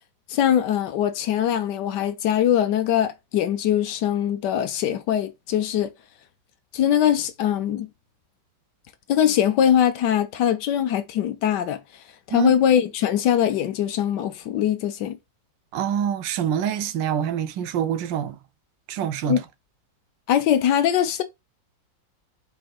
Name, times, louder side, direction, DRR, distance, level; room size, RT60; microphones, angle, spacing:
voice 1, 0.3-5.9 6.7-7.9 9.1-11.8 12.3-15.2 19.3-19.4 20.3-21.2, left 10 dB, 70° left, 1.2 m, -22 dB
voice 2, 15.7-18.4 18.9-19.4, right 9 dB, 80° right, 1.3 m, -25 dB
4.6 x 4.3 x 2.4 m
omnidirectional pair, 2.0 m